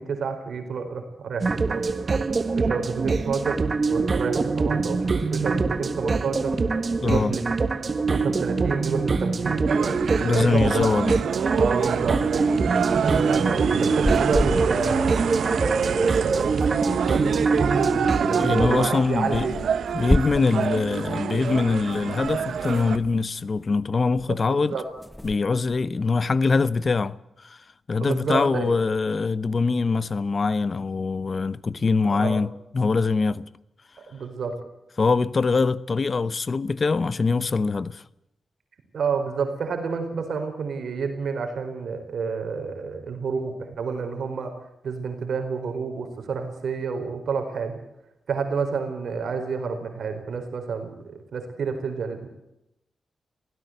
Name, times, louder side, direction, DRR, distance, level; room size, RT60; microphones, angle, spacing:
voice 1, 0.0-1.8 2.6-3.6 3.9-7.4 7.7-10.9 11.6-12.2 13.0-15.2 15.9-16.4 16.8-19.6 24.3-24.8 27.9-28.8 32.0-32.4 34.1-34.6 38.9-44.5 44.8-47.8 48.3-52.3, right 5 dB, 70° right, 4.5 m, -29 dB
sound 1, 1.4-18.9, right 4 dB, 40° right, 1.6 m, -24 dB
voice 2, 7.0-7.3 10.2-11.1 18.4-19.5 19.9-24.8 25.2-27.6 27.9-33.4 35.0-38.0, left 4 dB, 40° left, 0.8 m, -23 dB
sound 2, 9.7-23.0, right 7 dB, 90° right, 1.3 m, -28 dB
sound 3, 13.8-15.2 15.5-15.6 15.8-15.9 16.1-17.2 18.1-18.2 18.5-18.6 19.3-20.7 21.5-23.8 24.1-24.5 24.9-26.0, left 1 dB, 5° left, 0.8 m, -31 dB
24.0 x 17.0 x 8.0 m
wide cardioid pair, 130°, 0 cm